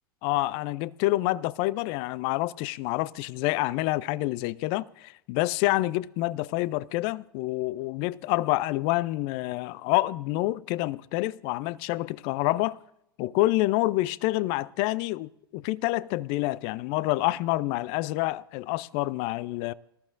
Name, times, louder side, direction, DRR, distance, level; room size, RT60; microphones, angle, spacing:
voice 1, 0.2-12.8 13.2-19.7, left 18 dB, 45° left, 0.4 m, -27 dB
19.0 x 14.0 x 2.6 m
figure-of-eight pair, 90°, 12 cm